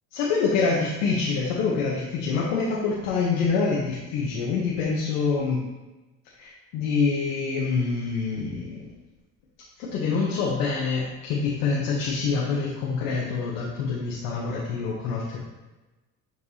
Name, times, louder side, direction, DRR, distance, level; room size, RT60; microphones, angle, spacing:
voice 1, 0.1-5.6 6.3-8.8 9.8-15.4, left 4 dB, 90° left, -4 dB, 1.1 m, -26 dB
7.1 x 4.7 x 2.8 m, 1.1 s
supercardioid pair, 90°, 34 cm